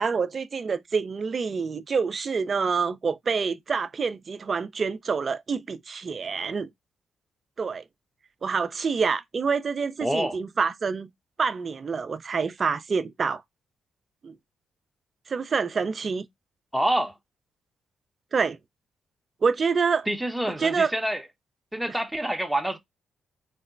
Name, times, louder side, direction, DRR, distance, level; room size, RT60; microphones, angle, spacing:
voice 1, 0.0-6.7 7.6-7.8 8.4-11.1 11.4-13.4 14.2-14.4 15.3-16.3 18.3-18.6 19.4-20.1 20.6-20.9, right 5 dB, 50° right, 0.3 m, -27 dB
voice 2, 10.0-10.4 16.7-17.1 20.1-21.2 21.7-22.8, right 1 dB, 5° right, 0.7 m, -27 dB
3.8 x 2.1 x 2.4 m
supercardioid pair, 55°, 0 cm